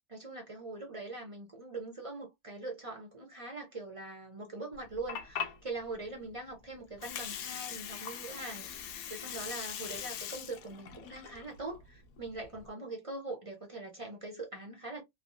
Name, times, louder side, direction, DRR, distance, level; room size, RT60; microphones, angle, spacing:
voice 1, 0.1-15.0, right 2 dB, 60° right, 0.3 m, -42 dB
Water, 4.7-12.7, left 8 dB, 70° left, 0.9 m, -42 dB
3.2 x 2.1 x 2.5 m
omnidirectional pair, 1.7 m